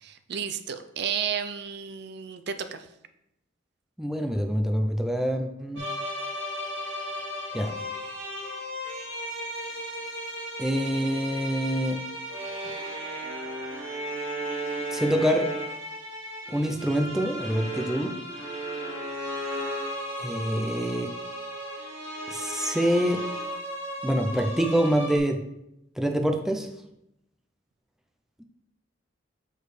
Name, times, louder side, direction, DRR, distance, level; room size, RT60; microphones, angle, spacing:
voice 1, 0.0-2.9, right 7 dB, 55° right, 9 dB, 0.5 m, -32 dB
voice 2, 4.0-5.8 7.5-7.7 10.6-12.0 14.9-15.5 16.5-18.1 20.2-21.1 22.3-23.2 24.0-25.4 26.0-26.7, equal, ahead, 3 dB, 0.5 m, -26 dB
sound 1, 5.8-25.2, equal, 80° right, 2.1 m, -35 dB
7.0 x 6.5 x 3.2 m, 0.84 s
head